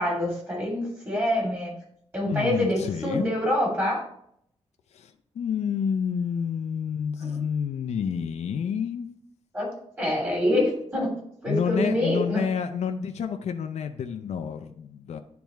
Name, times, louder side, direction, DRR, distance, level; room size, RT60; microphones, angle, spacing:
voice 1, 0.0-1.7 2.1-4.0 9.5-9.7 10.0-11.1 11.4-12.4, left 1 dB, 20° right, -4 dB, 2.6 m, -25 dB
voice 2, 2.3-3.3 4.9-9.1 11.5-15.2, left 7 dB, 75° left, 7 dB, 0.5 m, -29 dB
10.5 x 3.5 x 3.1 m, 0.69 s
wide cardioid pair, 160°, 11 cm